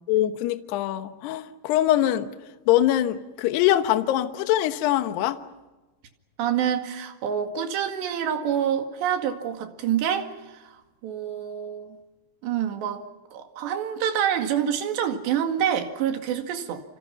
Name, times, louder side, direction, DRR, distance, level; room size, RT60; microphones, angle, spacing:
voice 1, 0.1-2.3 2.7-5.4, left 13 dB, 70° left, 9 dB, 3.0 m, -23 dB
voice 2, 6.4-10.7 11.0-12.0 12.4-13.1 13.3-16.8, right 9 dB, 70° right, 6 dB, 4.2 m, -27 dB
29.5 x 26.5 x 5.9 m, 1.1 s
omnidirectional pair, 5.3 m